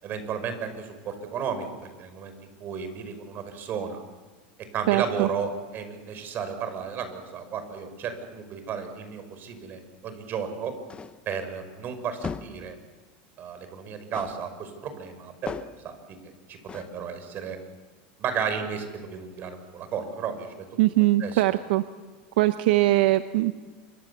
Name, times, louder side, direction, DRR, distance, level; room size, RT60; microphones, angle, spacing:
voice 1, 0.0-1.7 2.0-4.0 4.7-10.7 11.3-12.8 13.4-15.6 15.8-17.6 18.2-20.8 21.2-21.4, right 6 dB, 40° right, 9 dB, 5.4 m, -33 dB
voice 2, 4.9-5.3 20.8-21.8 22.4-23.5, right 17 dB, 75° right, 10 dB, 1.0 m, -21 dB
sound 1, 10.9-11.3 12.2-12.7 14.1-14.5 15.5-15.9 16.7-17.0, left 6 dB, 20° left, 1.0 m, -37 dB
28.0 x 24.5 x 7.1 m, 1.4 s
supercardioid pair, 120°, 5 cm